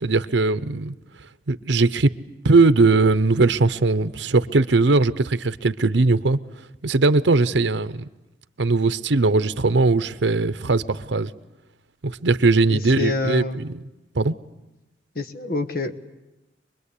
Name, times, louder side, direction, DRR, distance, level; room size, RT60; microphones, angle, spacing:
voice 1, 0.0-0.9 1.5-2.1 2.4-6.4 6.8-8.0 8.6-11.3 12.0-13.8 14.2-14.3, right 3 dB, 85° right, 0.8 m, -19 dB
voice 2, 12.7-13.6 15.1-16.1, left 3 dB, 55° left, 1.4 m, -27 dB
25.0 x 22.0 x 8.4 m
head